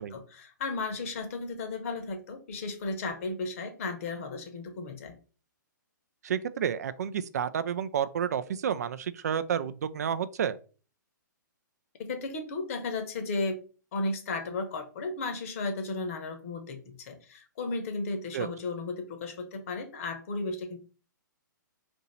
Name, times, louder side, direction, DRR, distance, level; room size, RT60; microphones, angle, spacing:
voice 1, 0.0-5.1 12.1-13.6 13.9-20.8, left 3 dB, 45° left, 0.9 m, -34 dB
voice 2, 6.2-10.6 18.3-18.5, right 8 dB, 55° right, 0.3 m, -30 dB
2.8 x 2.6 x 4.2 m
figure-of-eight pair, 125°, 11 cm